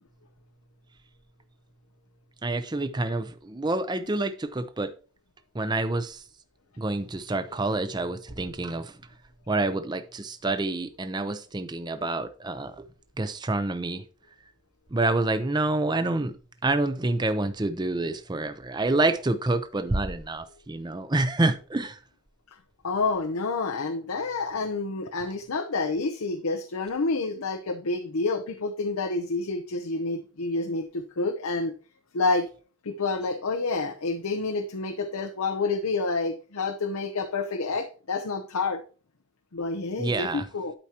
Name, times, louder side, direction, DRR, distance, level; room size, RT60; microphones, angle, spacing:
voice 1, 2.4-4.9 5.5-6.2 6.8-8.9 9.5-12.7 13.2-14.0 14.9-16.3 16.6-22.0 40.0-40.5, right 2 dB, 20° right, 0.6 m, -27 dB
voice 2, 22.8-31.7 32.1-32.5 32.9-38.8 39.5-40.7, left 3 dB, 85° left, 0.7 m, -28 dB
12.0 x 4.7 x 2.9 m
head